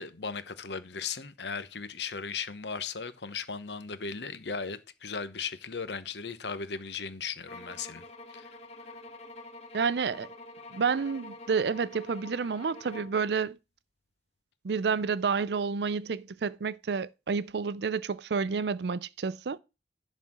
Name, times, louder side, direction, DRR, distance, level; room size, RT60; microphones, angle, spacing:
voice 1, 0.0-8.5, left 5 dB, 70° left, 1.0 m, -37 dB
sound 1, 7.5-13.2, left 2 dB, 35° left, 1.4 m, -47 dB
voice 2, 9.7-10.3 10.7-13.6 14.6-19.6, right 5 dB, 65° right, 0.5 m, -29 dB
11.0 x 4.2 x 7.5 m
head